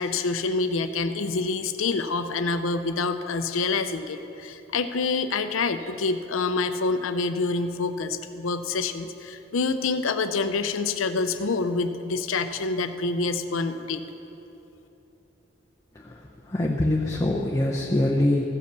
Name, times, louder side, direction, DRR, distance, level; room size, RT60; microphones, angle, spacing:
voice 1, 0.0-14.0, left 4 dB, 85° left, 9 dB, 0.6 m, -27 dB
voice 2, 16.5-18.4, left 1 dB, 15° left, -2 dB, 0.6 m, -24 dB
15.5 x 5.3 x 6.8 m, 3.0 s
head